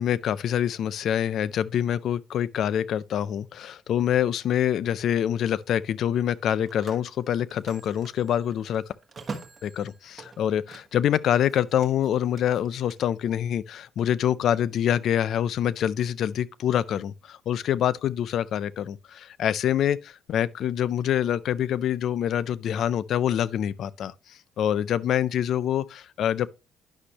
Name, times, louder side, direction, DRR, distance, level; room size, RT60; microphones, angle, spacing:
voice 1, 0.0-8.8 9.6-24.1 24.6-26.5, left 10 dB, 65° left, 0.4 m, -25 dB
Telephone, 6.3-11.1 11.4-13.0, right 4 dB, 35° right, 1.3 m, -44 dB
10.0 x 6.1 x 2.8 m
cardioid pair, 85°, 0 cm